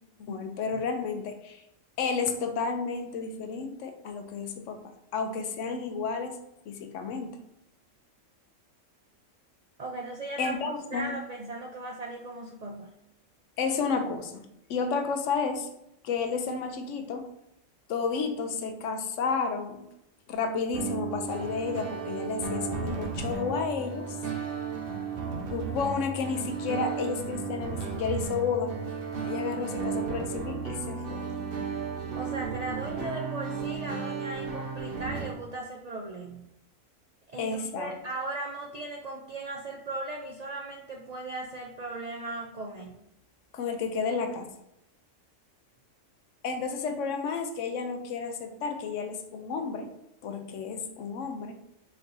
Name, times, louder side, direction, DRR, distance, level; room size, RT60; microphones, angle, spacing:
voice 1, 0.2-1.6 2.0-6.4 6.7-7.4 10.4-11.1 13.6-15.7 16.0-17.3 17.9-19.9 20.3-24.2 25.5-28.8 29.2-31.2 37.4-37.9 43.5-44.5 46.4-49.9 50.2-51.6, left 5 dB, 70° left, 6 dB, 0.9 m, -31 dB
voice 2, 9.8-10.6 10.9-12.9 32.2-36.5 37.3-43.0, right 2 dB, 85° right, 0 dB, 0.3 m, -37 dB
sound 1, 20.7-35.3, right 5 dB, 55° right, 0.8 m, -34 dB
4.3 x 4.2 x 2.6 m, 0.82 s
omnidirectional pair, 1.4 m